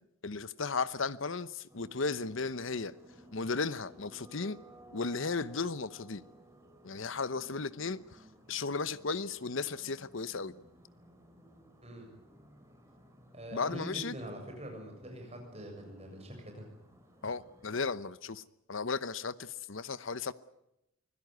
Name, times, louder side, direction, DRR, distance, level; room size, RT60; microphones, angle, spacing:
voice 1, 0.2-2.9 3.3-4.6 4.9-6.2 6.8-10.5 13.5-14.2 17.2-18.4 18.7-20.3, left 4 dB, 65° left, 0.9 m, -35 dB
sound 1, 1.7-17.8, equal, 15° right, 5.2 m, -58 dB
voice 2, 13.3-16.7, equal, 30° right, 7.5 m, -44 dB
25.0 x 17.0 x 9.5 m
head